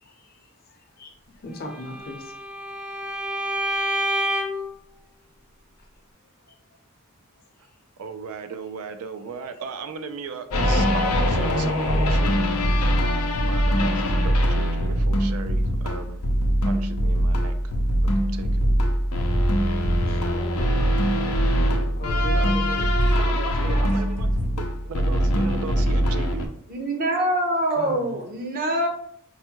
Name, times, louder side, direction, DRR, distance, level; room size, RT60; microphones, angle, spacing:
voice 1, 0.0-2.3 3.3-3.8 6.4-6.6 20.1-23.8 27.8-28.2, left 1 dB, 45° left, 2 dB, 0.7 m, -39 dB
Bowed string instrument, 1.7-4.7, equal, 5° right, 0.4 m, -28 dB
voice 2, 8.0-12.5 13.4-16.2 16.6-17.7 18.3-18.8 22.3-22.5 23.1-24.3 24.5-26.5, right 5 dB, 75° right, 8 dB, 0.4 m, -37 dB
sound 1, 10.5-26.5, equal, 80° left, 0.6 m, -22 dB
voice 3, 26.7-28.9, right 1 dB, 40° right, 3 dB, 0.7 m, -24 dB
4.7 x 2.2 x 2.8 m, 0.63 s
head